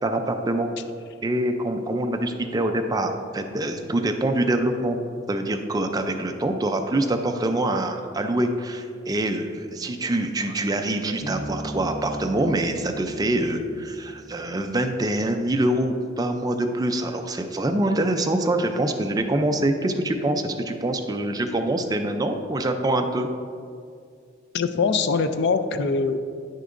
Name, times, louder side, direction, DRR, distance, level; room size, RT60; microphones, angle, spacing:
voice 1, 0.0-0.7 1.2-5.0 5.3-23.3, right 1 dB, 20° right, 5 dB, 0.4 m, -25 dB
Bass guitar, 11.2-14.9, right 1 dB, 25° left, 0.7 m, -37 dB
voice 2, 24.5-26.3, left 4 dB, 55° left, 10 dB, 0.4 m, -23 dB
9.5 x 6.4 x 2.5 m, 2.2 s
head